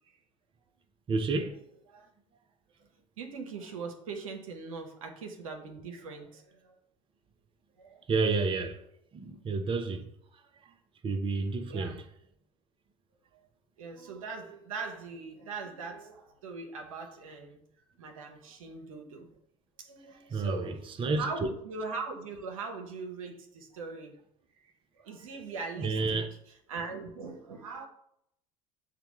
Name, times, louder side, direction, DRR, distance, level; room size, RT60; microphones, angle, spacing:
voice 1, 1.1-1.6 8.1-8.8 9.1-10.0 11.0-12.0 20.3-21.3 25.8-26.3, right 4 dB, 30° right, 0.6 m, -30 dB
voice 2, 3.2-6.8 7.8-8.0 11.7-12.0 13.8-17.6 18.0-19.3 19.8-24.1 25.0-26.2 26.7-27.9, right 4 dB, 85° right, 0.7 m, -41 dB
6.6 x 2.2 x 3.0 m
hypercardioid pair, 75°, 17 cm